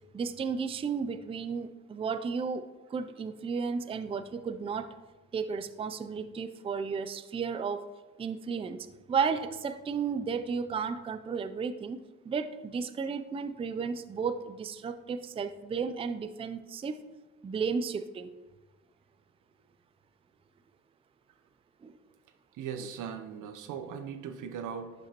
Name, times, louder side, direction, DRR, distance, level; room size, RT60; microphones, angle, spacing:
voice 1, 0.1-2.6 2.9-4.9 5.3-7.9 8.2-12.0 12.3-17.0 17.4-18.3 21.8-21.9, right 5 dB, 20° right, 11 dB, 0.4 m, -33 dB
voice 2, 22.5-24.9, right 7 dB, 85° right, 8 dB, 0.7 m, -39 dB
10.5 x 5.2 x 2.9 m, 1.2 s
cardioid pair, 90°, 30 cm